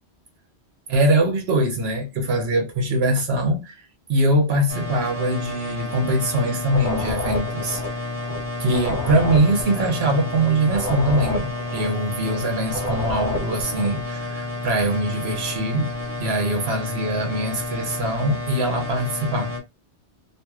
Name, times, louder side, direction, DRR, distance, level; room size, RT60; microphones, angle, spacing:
voice 1, 0.9-8.0 8.6-15.9 16.2-19.5, right 1 dB, 60° right, 1.2 m, -22 dB
sound 1, 4.7-19.6, left 2 dB, 30° right, 1.2 m, -31 dB
sound 2, 6.6-14.0, left 2 dB, 45° left, 0.9 m, -30 dB
2.9 x 2.8 x 2.3 m
omnidirectional pair, 1.2 m